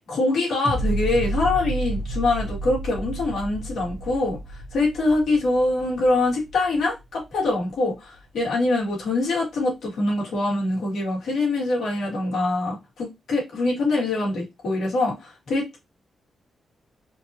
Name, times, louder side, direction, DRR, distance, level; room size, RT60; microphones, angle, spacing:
voice 1, 0.1-4.4 4.7-15.8, left 2 dB, 90° left, 2.3 m, -24 dB
sound 1, 0.6-7.7 8.1-8.2, right 2 dB, 15° right, 1.0 m, -31 dB
4.4 x 2.7 x 2.9 m
wide cardioid pair, 140°, 0 cm